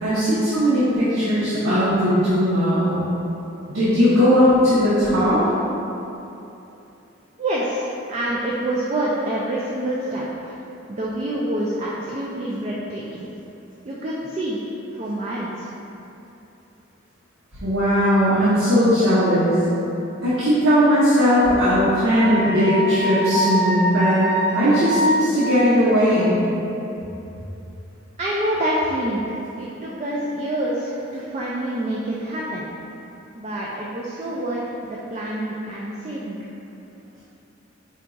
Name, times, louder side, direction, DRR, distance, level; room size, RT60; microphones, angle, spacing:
voice 1, 0.0-3.1 3.7-5.4 17.6-19.5 20.2-24.2 24.5-26.4, equal, 80° right, -12 dB, 0.9 m, -18 dB
voice 2, 7.4-10.2 10.9-13.3 13.9-14.6 14.9-15.7 28.2-29.3 29.6-32.7 33.4-36.4, right 1 dB, 30° right, -5 dB, 0.3 m, -27 dB
Wind instrument woodwind instrument, 22.1-25.6, equal, 5° right, 1.2 m, -24 dB
4.6 x 2.3 x 3.9 m, 2.9 s
head